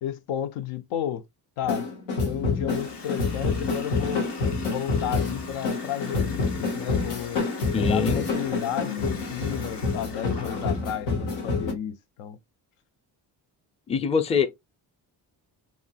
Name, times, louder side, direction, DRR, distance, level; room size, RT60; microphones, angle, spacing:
voice 1, 0.0-1.2 1.6-1.9 2.2-4.3 4.7-7.5 7.8-12.4, left 10 dB, 75° left, 0.6 m, -32 dB
sound 1, 1.6-11.7, left 3 dB, 90° left, 1.0 m, -28 dB
Water tap faucet, 2.7-11.2, left 3 dB, 55° left, 1.2 m, -42 dB
voice 2, 7.7-8.3 13.9-14.5, left 6 dB, 15° left, 0.4 m, -23 dB
2.9 x 2.5 x 2.3 m
supercardioid pair, 45°, 50 cm